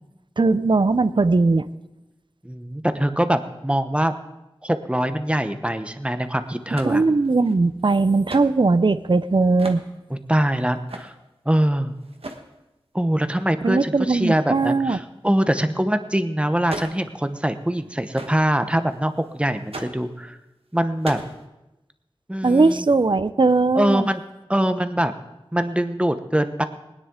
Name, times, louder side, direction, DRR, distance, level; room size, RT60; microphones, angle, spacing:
voice 1, 0.4-1.7 6.8-9.8 13.6-15.0 22.4-24.1, right 3 dB, 55° right, 14 dB, 0.6 m, -19 dB
voice 2, 2.4-4.1 4.6-7.0 10.1-11.1 11.5-11.9 12.9-20.4 20.7-21.2 22.3-22.9 23.8-24.2 24.5-25.1 25.5-26.6, right 1 dB, 10° right, 9 dB, 0.9 m, -23 dB
sound 1, 6.7-8.5 9.1-9.2 9.4-9.8 10.5-11.1 12.0-12.5 16.6-17.1 17.4-17.5 17.9-18.0 18.1-20.2 20.7-21.5, right 2 dB, 75° right, 1.2 m, -38 dB
20.0 x 9.9 x 3.8 m, 0.97 s
wide cardioid pair, 50°, 10 cm